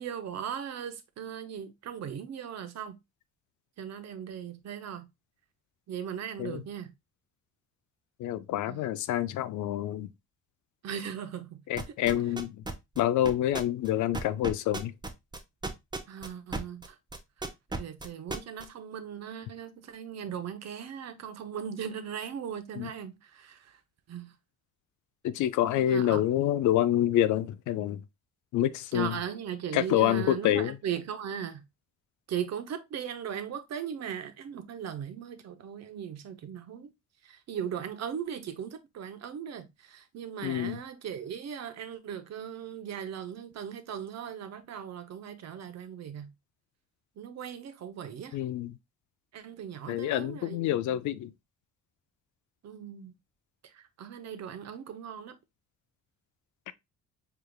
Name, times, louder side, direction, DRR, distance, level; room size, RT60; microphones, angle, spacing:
voice 1, 0.0-3.0 3.8-5.1 5.9-6.9 8.6-8.8 10.8-11.6 16.1-17.0 17.8-23.7 24.1-24.3 25.8-26.2 28.9-31.6 32.3-36.9 37.2-46.3 47.2-48.4 49.3-51.0 52.6-53.1 53.7-55.4, right 8 dB, 60° right, 0.8 m, -38 dB
voice 2, 8.2-10.1 11.7-12.6 13.0-14.9 22.8-22.9 25.2-28.0 28.5-29.2 29.7-30.8 40.4-40.8 48.3-48.8 49.9-51.3, left 12 dB, 75° left, 0.5 m, -27 dB
sound 1, 11.8-16.9 17.1-18.7, right 2 dB, 15° right, 0.6 m, -34 dB
4.7 x 3.4 x 2.2 m
cardioid pair, 90°, 30 cm